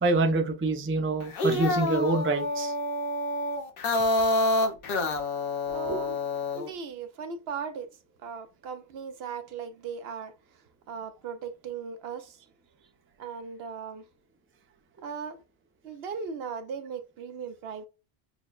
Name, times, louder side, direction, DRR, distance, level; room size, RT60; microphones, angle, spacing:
voice 1, 0.0-2.7 5.9-6.0, right 2 dB, 20° right, 0.4 m, -26 dB
sound 1, 1.2-6.7, left 2 dB, 65° left, 0.9 m, -27 dB
voice 2, 5.7-6.2 6.5-7.9 8.2-10.3 10.9-12.4 13.2-14.0 15.0-15.4 15.8-17.8, right 6 dB, 75° right, 0.8 m, -38 dB
6.0 x 2.1 x 2.3 m
omnidirectional pair, 1.1 m